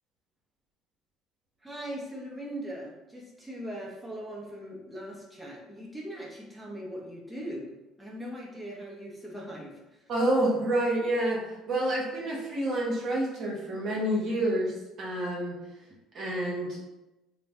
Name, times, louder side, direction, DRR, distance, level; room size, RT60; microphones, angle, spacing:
voice 1, 1.6-10.1, equal, 10° right, -4 dB, 0.8 m, -40 dB
voice 2, 10.1-15.6 16.1-16.8, right 1 dB, 55° right, -3 dB, 0.8 m, -28 dB
2.5 x 2.1 x 3.4 m, 0.99 s
hypercardioid pair, 60°, 0 cm